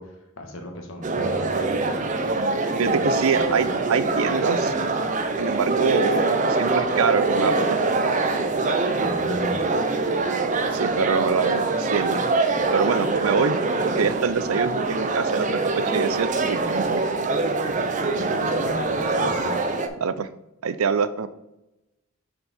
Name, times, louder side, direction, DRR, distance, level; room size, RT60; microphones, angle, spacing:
voice 1, 0.0-1.8 2.8-3.5 9.0-9.7 18.1-19.6, equal, 70° left, 3 dB, 1.4 m, -35 dB
sound 1, 1.0-19.9, right 3 dB, 35° right, 0.5 m, -24 dB
voice 2, 2.8-4.7 5.4-7.8 10.7-12.2 12.7-17.0 20.0-20.3 20.6-21.3, right 5 dB, 90° right, 13 dB, 0.5 m, -25 dB
6.4 x 4.6 x 4.2 m, 0.92 s
head